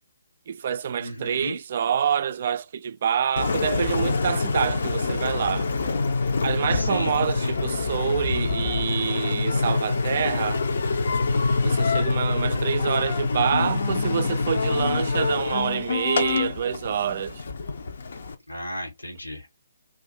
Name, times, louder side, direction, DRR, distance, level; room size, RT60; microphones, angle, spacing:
voice 1, 0.5-5.7 6.4-10.6 11.6-17.4, right 8 dB, 45° right, 0.3 m, -27 dB
voice 2, 1.0-1.6 6.7-7.1 7.4-7.6 12.3-12.8 18.5-19.5, equal, 80° left, 1.3 m, -34 dB
Engine, 3.4-18.3, left 4 dB, 55° left, 0.6 m, -25 dB
2.5 x 2.5 x 4.1 m
figure-of-eight pair, 135°, 0 cm